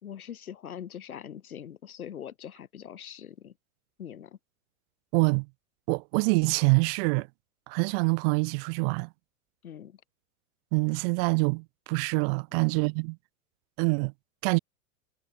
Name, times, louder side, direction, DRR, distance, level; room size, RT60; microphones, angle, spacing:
voice 1, 0.0-3.5 4.0-4.4 9.6-10.0 12.5-12.6, left 9 dB, 90° left, 5.8 m, -42 dB
voice 2, 5.1-5.5 5.9-7.3 7.7-9.1 10.7-13.2 13.8-14.1 14.4-14.6, right 33 dB, 45° right, 0.6 m, -25 dB
hypercardioid pair, 120°, 42 cm